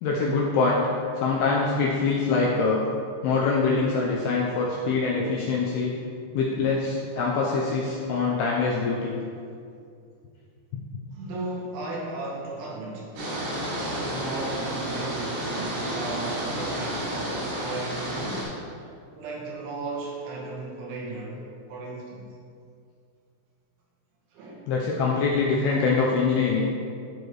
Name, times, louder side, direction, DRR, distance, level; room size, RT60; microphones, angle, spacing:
voice 1, 0.0-0.9 1.2-2.9 3.2-5.9 6.3-9.2 24.7-26.7, left 4 dB, 80° left, -3 dB, 2.3 m, -24 dB
voice 2, 11.1-13.3 13.7-18.5 19.1-21.4 21.7-22.3 24.3-24.7, right 2 dB, 90° right, -3 dB, 3.7 m, -36 dB
sound 1, 13.2-18.4, right 1 dB, 65° right, 3.7 m, -31 dB
12.5 x 4.9 x 3.1 m, 2.3 s
omnidirectional pair, 5.3 m